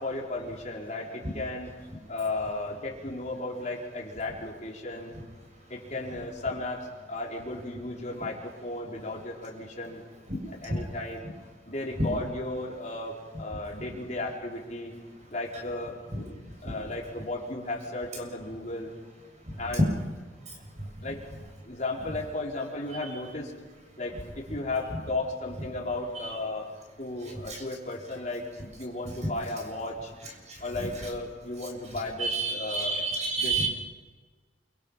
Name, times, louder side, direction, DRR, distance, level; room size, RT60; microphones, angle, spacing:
voice 1, 0.0-1.7 2.1-5.2 5.7-10.0 10.5-11.3 11.7-14.9 15.3-16.0 16.6-18.9 19.6-19.9 21.0-21.2 21.6-23.5 24.0-26.7 27.0-28.5 28.8-30.1 30.6-33.0 33.4-33.7, left 2 dB, 45° left, -2 dB, 4.6 m, -35 dB
voice 2, 32.2-33.7, right 3 dB, 40° right, 0 dB, 7.3 m, -28 dB
29.0 x 24.5 x 5.9 m, 1.4 s
head